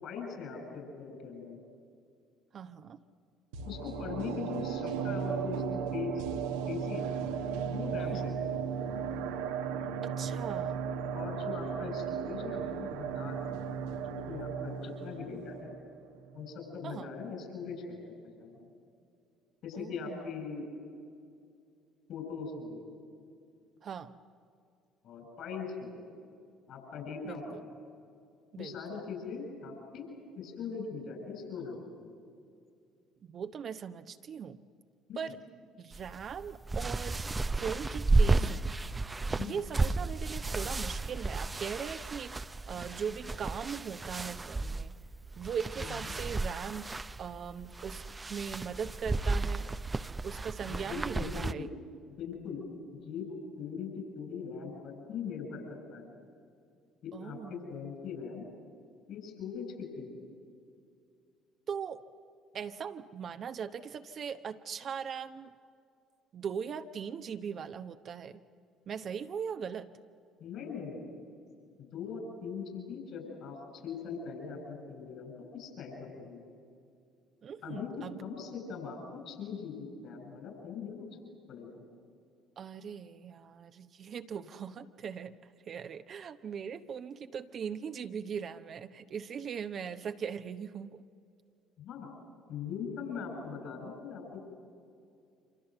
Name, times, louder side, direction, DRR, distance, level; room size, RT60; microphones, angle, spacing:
voice 1, 0.0-1.6 3.6-6.2 6.7-7.1 7.6-8.6 11.1-15.7 16.3-18.1 18.4-18.7 19.6-20.7 22.1-22.9 25.0-26.1 26.7-27.7 28.6-30.1 30.3-32.2 35.1-35.4 39.4-39.6 45.8-45.9 50.7-51.7 52.2-52.6 53.0-53.3 53.6-56.0 57.0-58.5 59.1-60.1 70.4-71.1 71.8-73.6 73.8-76.4 77.6-77.9 78.2-81.1 81.5-81.8 91.8-92.1 92.5-94.5, left 5 dB, 55° left, 4 dB, 7.8 m, -41 dB
voice 2, 2.5-3.0 8.0-8.3 10.0-10.8 16.8-17.1 19.7-20.2 23.8-24.2 27.2-27.6 28.5-29.0 33.3-34.6 35.2-35.4 35.8-37.2 37.6-38.7 39.3-44.9 45.4-48.0 48.3-49.7 50.2-51.7 57.1-57.7 61.7-62.0 62.5-65.5 66.3-68.4 68.9-69.9 77.4-78.2 82.6-85.4 85.7-91.0, right 7 dB, 45° right, 8 dB, 1.0 m, -40 dB
sound 1, 3.5-16.6 16.9-17.0, right 7 dB, 75° right, 1.3 m, -36 dB
sound 2, 35.9-51.5, right 3 dB, 20° right, 0.8 m, -33 dB
27.5 x 26.5 x 8.0 m, 2.4 s
figure-of-eight pair, 55°, 0 cm